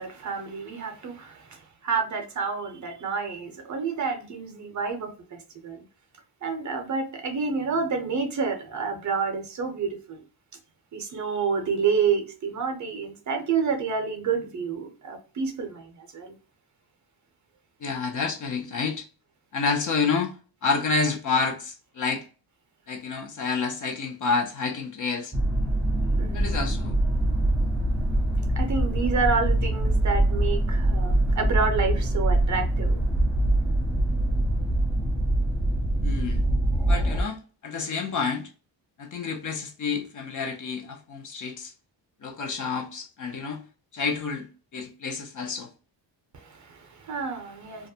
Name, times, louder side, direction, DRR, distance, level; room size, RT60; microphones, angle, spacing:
voice 1, 0.0-5.8 6.4-10.2 10.9-16.3 26.1-26.7 28.6-33.0 46.3-47.9, right 5 dB, 40° right, 0.6 m, -29 dB
voice 2, 17.8-19.1 19.5-20.3 20.6-22.2 22.9-25.3 26.3-27.0 36.0-36.4 36.9-38.5 39.0-41.7 42.2-43.6 43.9-44.5 44.7-45.7, left 4 dB, 45° left, 0.6 m, -29 dB
sound 1, 25.3-37.2, right 1 dB, ahead, 0.3 m, -24 dB
2.4 x 2.1 x 2.7 m
cardioid pair, 125°, 45 cm